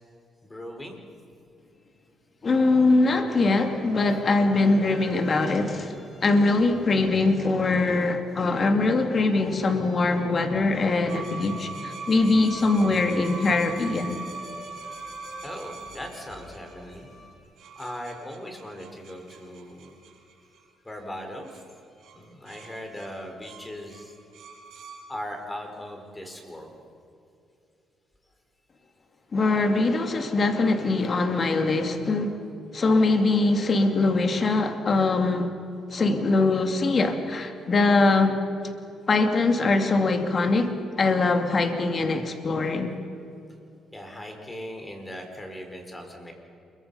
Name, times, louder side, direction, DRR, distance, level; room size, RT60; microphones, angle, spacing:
voice 1, 0.4-1.0 15.4-17.1 17.8-19.9 20.8-21.6 21.9-24.1 25.1-26.7 43.9-46.3, equal, 15° left, 4.8 m, -39 dB
voice 2, 2.4-14.2 29.3-32.4 32.7-35.5 35.9-38.4 39.1-43.0, left 3 dB, 40° left, 2.5 m, -22 dB
sound 1, 3.5-17.3, left 3 dB, 75° left, 7.7 m, -48 dB
sound 2, 11.1-17.0 17.6-20.9 21.4-21.7 22.0-22.2 22.5-25.0, right 4 dB, 75° right, 7.8 m, -41 dB
28.0 x 23.0 x 5.7 m
cardioid pair, 90°, 0 cm